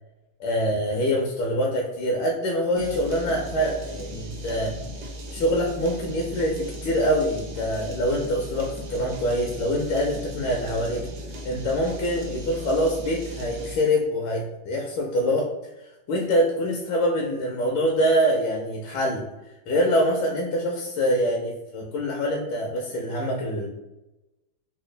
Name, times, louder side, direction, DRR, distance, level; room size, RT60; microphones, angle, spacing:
voice 1, 0.4-4.7 5.3-11.0 11.4-15.5 16.1-19.2 19.7-23.7, equal, 75° left, -1 dB, 1.3 m, -25 dB
sound 1, 2.8-13.9, equal, 65° right, 1.1 m, -37 dB
3.9 x 2.2 x 3.1 m, 0.97 s
omnidirectional pair, 2.2 m